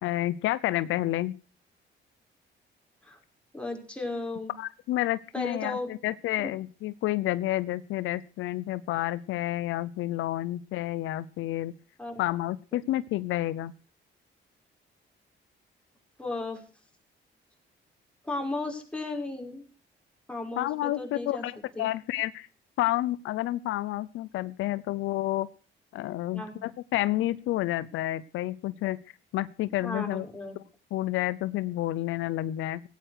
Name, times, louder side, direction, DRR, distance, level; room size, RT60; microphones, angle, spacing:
voice 1, 0.0-1.4 4.6-11.7 12.2-13.7 20.6-22.5 22.8-25.5 25.9-29.0 29.3-30.2 30.9-32.9, left 15 dB, 85° left, 17 dB, 0.7 m, -30 dB
voice 2, 3.5-4.5 5.3-5.9 12.0-12.1 16.2-16.6 18.2-19.6 20.3-21.4 21.8-21.9 26.3-26.6 29.8-30.6, left 2 dB, 5° left, 1 dB, 5.6 m, -35 dB
17.0 x 9.2 x 6.5 m, 0.38 s
cardioid pair, 90°, 20 cm